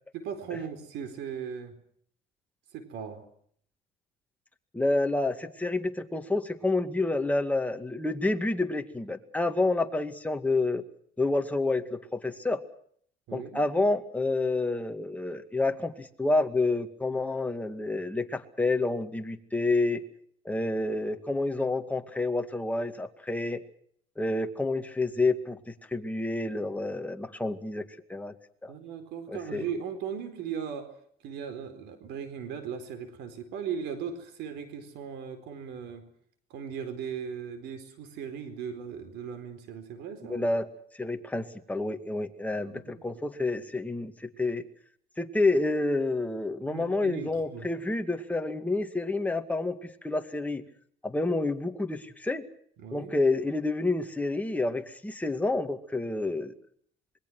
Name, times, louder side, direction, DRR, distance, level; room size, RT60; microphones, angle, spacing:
voice 1, 0.1-1.7 2.7-3.2 13.3-13.6 28.7-30.9 31.2-36.1 36.5-40.5 42.5-43.0 46.7-47.7 52.8-53.1, right 7 dB, 85° right, 9 dB, 4.3 m, -38 dB
voice 2, 4.7-10.8 11.2-12.6 13.3-20.0 20.4-23.6 24.2-28.3 28.6-28.7 29.3-29.7 40.3-40.7 40.9-44.6 45.2-50.6 51.0-52.5 52.9-56.5, left 2 dB, 10° left, 6 dB, 2.2 m, -29 dB
27.0 x 21.5 x 6.3 m, 0.62 s
cardioid pair, 110°, 17 cm